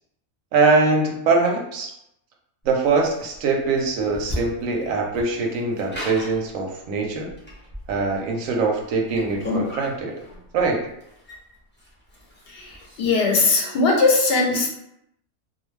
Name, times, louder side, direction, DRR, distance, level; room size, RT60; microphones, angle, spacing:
voice 1, 0.5-1.9 2.6-7.3 7.9-10.2 10.5-10.9, right 3 dB, 75° right, 1 dB, 1.0 m, -22 dB
sound 1, 2.6-13.1, left 2 dB, 15° left, 0.3 m, -35 dB
voice 2, 12.5-14.7, left 3 dB, 60° left, -1 dB, 0.7 m, -20 dB
2.4 x 2.2 x 3.2 m, 0.79 s
omnidirectional pair, 1.5 m